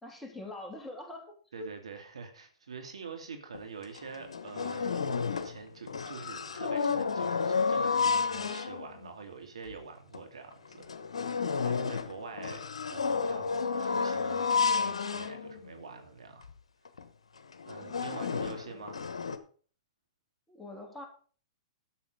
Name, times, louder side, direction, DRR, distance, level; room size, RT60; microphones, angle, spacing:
voice 1, 0.0-1.7 17.8-18.8 20.5-21.1, left 2 dB, 5° left, 1 dB, 3.0 m, -45 dB
voice 2, 1.5-5.0 5.3-11.0 11.4-13.5 13.8-16.5 17.6-19.0, right 5 dB, 80° right, 5 dB, 2.5 m, -46 dB
sound 1, 3.5-3.6 3.9-5.6 5.9-9.1 9.7-9.8 10.1-10.2 10.7-15.9 16.4-16.5 16.8-17.0 17.5-19.4, left 5 dB, 80° left, 1.1 m, -31 dB
11.5 x 7.1 x 5.4 m, 0.43 s
hypercardioid pair, 115°, 3 cm